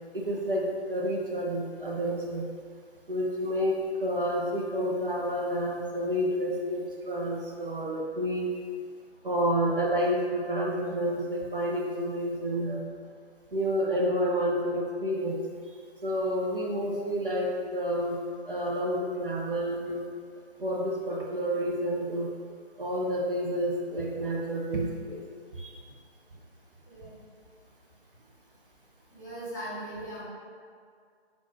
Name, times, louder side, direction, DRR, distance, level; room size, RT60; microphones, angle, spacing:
voice 1, 0.1-2.5 3.1-8.5 9.2-12.9 13.5-15.4 16.0-18.2 18.4-20.0 20.6-22.3 22.8-25.2 25.5-25.8, equal, 55° right, -3 dB, 0.6 m, -29 dB
voice 2, 29.1-30.2, right 1 dB, 15° left, -14 dB, 0.8 m, -39 dB
5.0 x 2.6 x 2.2 m, 2.1 s
figure-of-eight pair, 155°, 33 cm